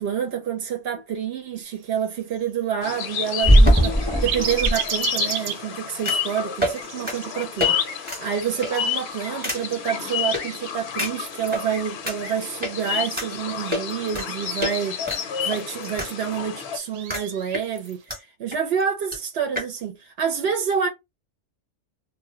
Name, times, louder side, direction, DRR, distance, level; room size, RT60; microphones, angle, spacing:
voice 1, 0.0-20.9, right 7 dB, 65° right, 0.8 m, -28 dB
sound 1, 1.0-1.1 3.4-4.7 6.1-6.3 6.6-6.8 7.1-7.2 7.6-7.7 8.0-8.2 8.6-8.9 9.4-9.6 10.3-10.4 11.0-11.6 12.1-12.2 12.6-12.7 13.2-13.3 13.7-14.3 14.6-14.7 15.1-16.1 16.4-16.5 17.1-17.2 17.5-18.2 18.5-18.6 18.8-18.9 19.1-19.2 19.6-19.7, equal, 10° right, 0.8 m, -21 dB
sound 2, 1.6-18.0, right 8 dB, 90° right, 0.9 m, -37 dB
sound 3, 2.8-16.8, left 8 dB, 65° left, 0.7 m, -30 dB
2.1 x 2.1 x 3.6 m
omnidirectional pair, 1.2 m